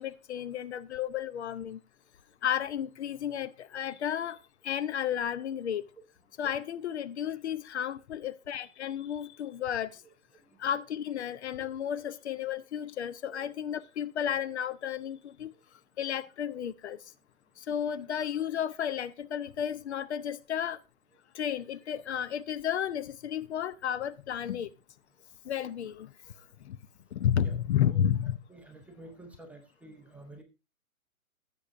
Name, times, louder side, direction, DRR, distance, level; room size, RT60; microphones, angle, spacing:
voice 1, 0.0-1.8 2.4-4.4 4.6-5.9 6.4-10.0 10.6-15.5 16.0-17.0 17.6-20.8 21.3-24.7 25.4-26.1 26.6-26.8 27.1-28.4, left 9 dB, 50° left, 0.7 m, -32 dB
voice 2, 29.0-30.4, right 1 dB, 5° right, 0.6 m, -49 dB
15.5 x 6.9 x 2.5 m
hypercardioid pair, 135°, 43 cm